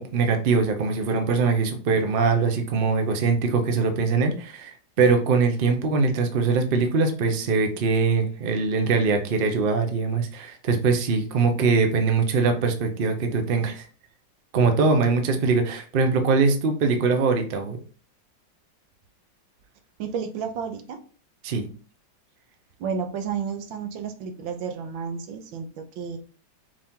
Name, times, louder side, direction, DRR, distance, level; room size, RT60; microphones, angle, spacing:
voice 1, 0.0-13.8 14.5-17.8 21.4-21.7, right 4 dB, 70° right, 5 dB, 0.5 m, -22 dB
voice 2, 20.0-21.0 22.8-26.2, right 6 dB, 90° right, 6 dB, 1.5 m, -31 dB
4.9 x 2.9 x 3.5 m, 0.40 s
omnidirectional pair, 2.0 m